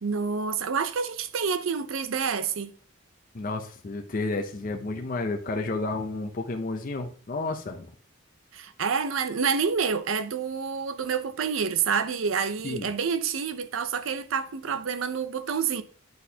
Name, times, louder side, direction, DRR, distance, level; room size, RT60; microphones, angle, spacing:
voice 1, 0.0-2.7 8.5-15.8, right 6 dB, 85° right, 0.5 m, -28 dB
voice 2, 3.3-7.9 12.6-12.9, left 2 dB, 45° left, 0.5 m, -31 dB
9.4 x 4.2 x 2.8 m
head